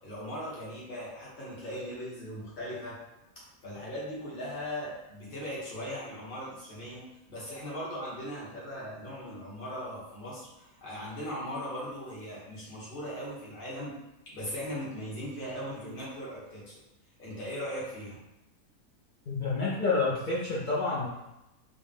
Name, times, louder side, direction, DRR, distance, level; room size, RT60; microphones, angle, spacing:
voice 1, 0.0-3.0 3.3-14.0 14.3-16.8 17.2-18.2, equal, 35° left, -6 dB, 1.4 m, -39 dB
voice 2, 19.3-21.1, left 3 dB, 55° left, -6 dB, 0.5 m, -28 dB
4.4 x 2.4 x 3.4 m, 0.92 s
omnidirectional pair, 1.6 m